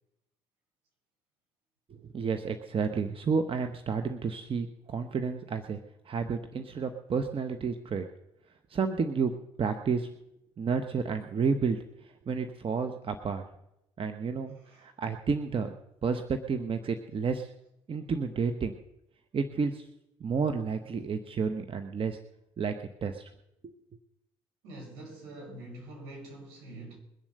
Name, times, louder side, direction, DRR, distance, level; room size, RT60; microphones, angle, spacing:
voice 1, 1.9-5.8 6.0-8.1 8.7-9.3 9.6-10.1 10.6-13.5 14.0-15.7 16.0-17.5 17.9-18.7 19.3-19.9 20.2-22.2 22.6-22.7 23.0-23.3 23.6-23.7, right 5 dB, 40° right, 1.1 m, -31 dB
voice 2, 14.6-14.9 24.6-27.0, right 1 dB, 75° right, 5.4 m, -45 dB
22.0 x 7.3 x 6.7 m
hypercardioid pair, 55°, 14 cm